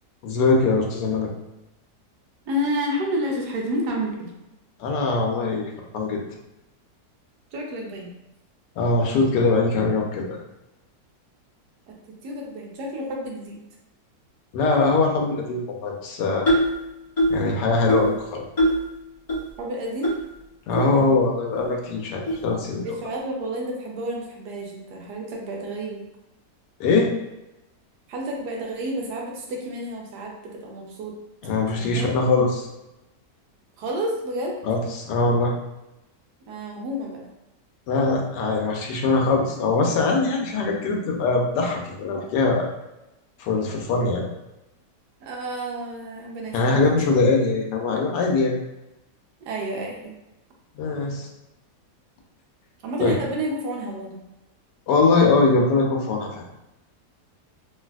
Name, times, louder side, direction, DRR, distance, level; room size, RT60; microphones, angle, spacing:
voice 1, 0.2-1.3 4.8-6.2 8.8-10.4 14.5-16.5 17.3-18.4 20.7-22.9 26.8-27.1 31.4-32.7 34.6-35.5 37.9-42.7 43.4-44.2 46.5-48.6 50.8-51.3 53.0-53.2 54.9-56.5, left 3 dB, 80° left, 0 dB, 1.2 m, -22 dB
voice 2, 2.5-4.3 7.5-8.1 11.9-12.0 12.2-13.6 19.6-20.2 20.8-21.2 22.8-26.0 28.1-31.1 31.8-32.1 33.8-34.5 36.5-37.2 45.2-47.3 49.4-50.2 52.8-54.2, equal, 75° right, -1 dB, 1.2 m, -30 dB
sound 1, 16.5-16.8 17.2-17.5 17.9-18.2 18.6-18.8 19.3-19.4 20.0-20.2 20.7-20.8 21.5-21.6 22.3-22.4, equal, 45° left, 0.4 m, -21 dB
3.3 x 2.6 x 2.2 m, 0.94 s
omnidirectional pair, 1.9 m